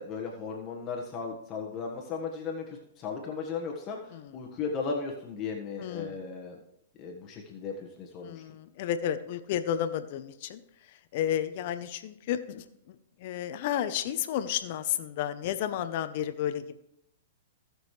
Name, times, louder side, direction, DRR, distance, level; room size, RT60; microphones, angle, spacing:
voice 1, 0.0-6.6 7.0-8.4, left 5 dB, 30° left, 0 dB, 1.5 m, -36 dB
voice 2, 5.8-6.2 8.2-10.6 11.1-12.6 13.2-16.8, left 10 dB, 55° left, 11 dB, 0.8 m, -32 dB
17.5 x 6.3 x 3.3 m, 0.79 s
hypercardioid pair, 130°, 0 cm